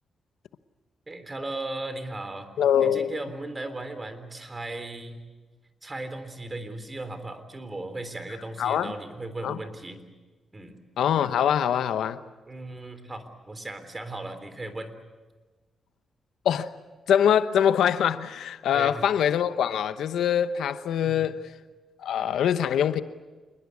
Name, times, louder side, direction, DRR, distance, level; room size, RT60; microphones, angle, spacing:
voice 1, 1.1-2.5 2.8-5.2 5.8-10.0 10.5-10.8 12.5-14.9 18.7-19.1 21.0-21.3, right 2 dB, 25° right, 3.6 m, -37 dB
voice 2, 2.6-3.2 8.6-8.9 9.4-9.6 11.0-12.2 16.4-16.7 17.1-21.4 22.0-23.0, left 9 dB, 90° left, 0.9 m, -23 dB
27.0 x 21.0 x 8.4 m
cardioid pair, 90°, 0 cm